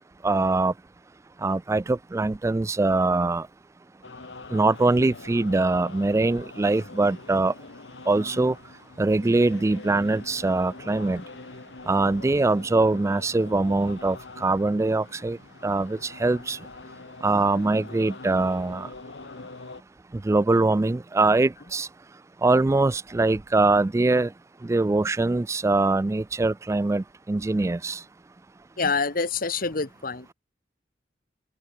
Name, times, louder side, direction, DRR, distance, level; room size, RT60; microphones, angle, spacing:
voice 1, 0.2-0.7 1.4-3.5 4.5-7.5 8.1-8.6 9.0-11.2 11.9-16.6 17.2-18.9 20.1-21.9 22.4-24.3 24.6-28.0, right 2 dB, 15° right, 0.3 m, -23 dB
sound 1, 4.0-19.8, left 3 dB, 75° left, 1.5 m, -44 dB
voice 2, 28.8-30.3, left 4 dB, 50° left, 1.7 m, -26 dB
open air
head